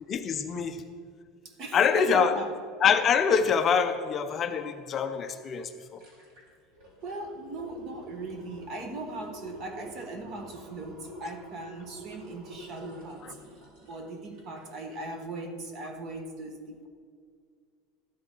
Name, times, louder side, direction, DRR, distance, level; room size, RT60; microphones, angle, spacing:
voice 1, 0.1-0.8 1.7-2.3 2.8-6.0, left 6 dB, 25° left, 6 dB, 0.5 m, -25 dB
voice 2, 1.4-2.5 7.0-13.4 13.8-16.9, right 2 dB, 35° right, 6 dB, 1.1 m, -39 dB
sound 1, 5.3-5.4 5.7-14.8 15.1-15.2, right 1 dB, 50° right, 3.9 m, -47 dB
13.5 x 12.0 x 3.8 m, 2.1 s
cardioid pair, 175°, 0 cm